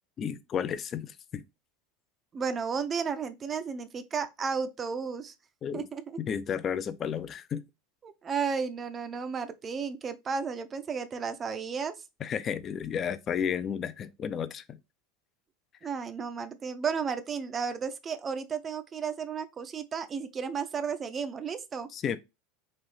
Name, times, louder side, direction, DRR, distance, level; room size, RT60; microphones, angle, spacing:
voice 1, 0.2-1.4 5.6-5.9 6.2-7.6 12.2-14.8 21.9-22.2, left 8 dB, 35° left, 0.4 m, -32 dB
voice 2, 2.3-5.3 5.7-6.2 8.0-11.9 15.8-21.9, right 6 dB, 30° right, 0.5 m, -33 dB
4.1 x 2.6 x 3.2 m
figure-of-eight pair, 75°, 0 cm